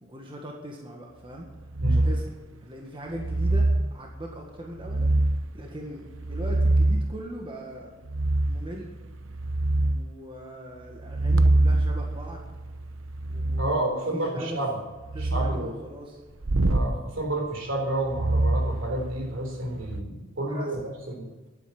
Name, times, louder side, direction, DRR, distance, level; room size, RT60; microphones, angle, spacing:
voice 1, 0.0-1.5 1.8-2.3 2.6-5.2 5.5-7.9 8.5-8.9 9.7-12.5 13.3-14.6 15.1-16.2 20.5-20.9, equal, 25° right, 0 dB, 1.7 m, -39 dB
sound 1, 1.7-2.3 3.1-3.9 4.8-5.5 6.1-7.1 8.0-8.7 9.1-10.0 11.0-13.7 15.0-15.6 16.4-16.9 18.1-19.3 19.7-20.0, right 2 dB, 85° right, 0.9 m, -24 dB
voice 2, 13.6-14.7 15.2-15.7 16.7-20.8 21.2-21.3, right 1 dB, 65° right, 2 dB, 3.8 m, -30 dB
11.5 x 9.2 x 8.7 m, 1.2 s
head